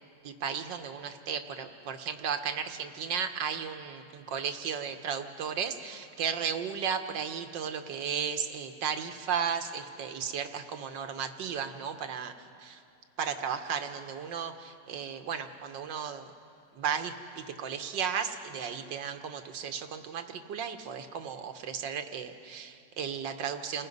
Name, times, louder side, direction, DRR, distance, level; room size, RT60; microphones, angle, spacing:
voice 1, 0.2-12.3 12.6-12.8 13.2-16.3 16.7-23.9, right 7 dB, 90° right, 8 dB, 1.7 m, -34 dB
29.0 x 18.5 x 5.4 m, 2.5 s
omnidirectional pair, 1.9 m